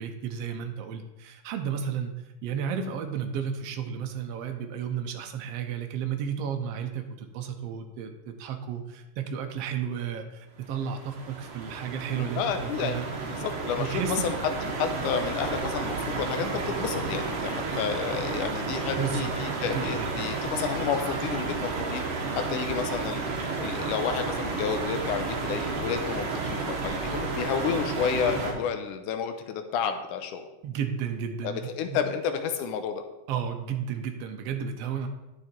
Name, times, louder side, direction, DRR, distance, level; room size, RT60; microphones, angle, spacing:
voice 1, 0.0-2.1 2.4-13.1 13.8-14.3 18.9-19.3 19.6-20.2 30.6-32.0 33.3-35.1, right 7 dB, 75° right, 5 dB, 1.5 m, -33 dB
sound 1, 10.6-28.5, right 4 dB, 50° right, 2.0 m, -32 dB
voice 2, 12.1-14.4 14.8-23.2 23.6-30.5 31.4-33.0, left 7 dB, 75° left, 7 dB, 2.2 m, -31 dB
9.7 x 6.9 x 4.5 m, 1.0 s
omnidirectional pair, 3.7 m